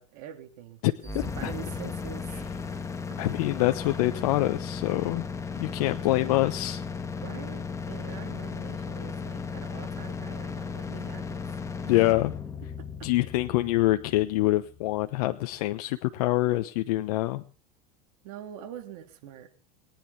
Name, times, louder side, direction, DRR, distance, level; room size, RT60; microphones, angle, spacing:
voice 1, 0.0-2.5 3.1-3.2 7.2-11.4 11.8-11.9 12.8-13.1 18.2-19.5, right 11 dB, 65° right, 5 dB, 3.6 m, -44 dB
voice 2, 0.8-1.5 3.2-5.3 5.6-6.8 11.8-12.3 13.0-17.4, left 17 dB, 70° left, 9 dB, 1.1 m, -25 dB
sound 1, 1.0-15.0, left 5 dB, 15° left, 1.8 m, -36 dB
22.0 x 10.0 x 6.1 m, 0.38 s
supercardioid pair, 125°, 20 cm